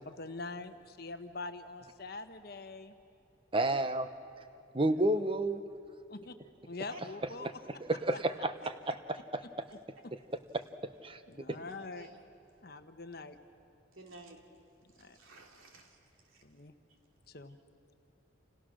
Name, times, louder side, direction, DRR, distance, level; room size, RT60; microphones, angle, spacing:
voice 1, 0.0-2.9 4.7-5.0 6.1-6.3 6.6-7.6 7.9-8.0 10.0-10.1 11.3-12.1 12.6-13.4 14.8-15.2 16.4-16.7 17.3-17.6, left 3 dB, 50° left, 8 dB, 1.2 m, -44 dB
voice 2, 3.5-4.1 4.7-5.6 7.4-7.5 7.9-8.5 8.9-9.0 10.5-11.2, right 1 dB, 25° right, 10 dB, 0.9 m, -30 dB
voice 3, 11.5-12.2 13.9-14.4 15.0-16.4, right 2 dB, 85° right, 2 dB, 3.1 m, -53 dB
29.0 x 29.0 x 6.4 m, 2.7 s
head